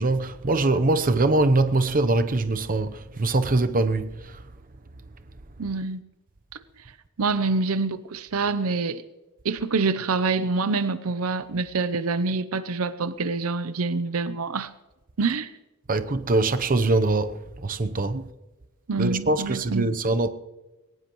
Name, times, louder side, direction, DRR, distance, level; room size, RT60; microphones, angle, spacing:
voice 1, 0.0-4.4 15.9-18.2 19.0-20.3, right 2 dB, 40° right, 0.8 m, -23 dB
voice 2, 5.6-6.0 7.2-9.0 9.4-14.7 15.2-15.5 18.1-18.2 18.9-19.9, right 4 dB, 80° right, 0.7 m, -26 dB
20.5 x 18.5 x 3.1 m
head